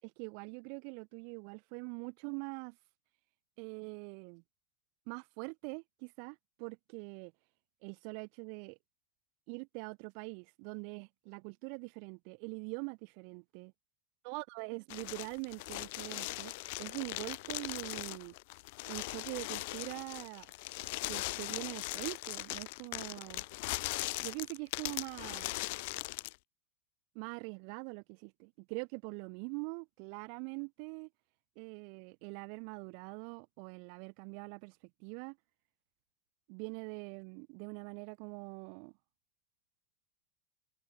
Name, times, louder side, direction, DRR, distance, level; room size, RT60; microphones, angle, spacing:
voice 1, 0.0-2.8 3.6-4.4 5.1-7.3 7.8-8.8 9.5-13.7 14.2-18.3 18.9-20.5 21.1-23.4 24.2-25.5 27.1-31.1 31.6-35.4 36.5-38.9, right 40 dB or more, 45° right, 0.8 m, -43 dB
sound 1, 14.9-26.4, left 24 dB, 50° left, 0.4 m, -40 dB
figure-of-eight pair, 90°, 0 cm